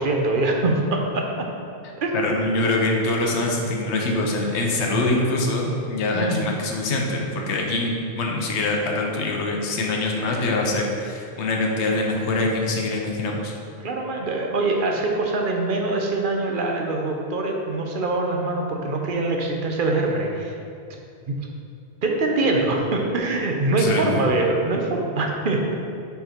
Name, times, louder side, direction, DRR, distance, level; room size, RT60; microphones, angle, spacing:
voice 1, 0.0-1.5 2.0-2.2 6.1-6.5 13.8-20.6 21.3-21.4 22.0-25.7, right 2 dB, 55° right, 1 dB, 0.9 m, -23 dB
voice 2, 2.1-13.5 23.8-24.0, left 2 dB, 80° left, 0 dB, 1.1 m, -24 dB
5.6 x 4.6 x 4.4 m, 2.5 s
omnidirectional pair, 1.1 m